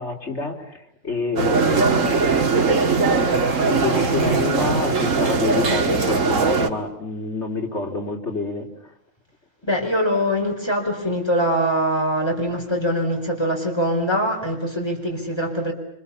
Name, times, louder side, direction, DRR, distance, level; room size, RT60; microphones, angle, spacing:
voice 1, 0.0-2.9 3.7-8.9, left 3 dB, 60° left, 1 dB, 4.0 m, -28 dB
sound 1, 1.4-6.7, right 4 dB, 80° right, 2.1 m, -20 dB
sound 2, 1.5-6.5, equal, 45° right, 3.3 m, -40 dB
voice 2, 9.7-15.7, equal, 20° left, 1 dB, 4.5 m, -23 dB
26.0 x 25.5 x 7.1 m, 0.75 s
omnidirectional pair, 1.3 m